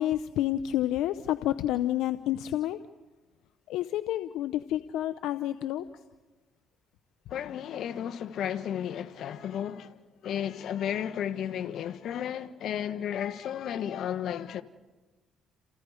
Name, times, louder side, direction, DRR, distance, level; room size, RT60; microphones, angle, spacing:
voice 1, 0.0-2.8 3.7-5.9, left 13 dB, 85° left, 0.7 m, -29 dB
voice 2, 7.3-14.6, left 9 dB, 65° left, 1.3 m, -33 dB
29.0 x 29.0 x 5.0 m
cardioid pair, 90°, 0 cm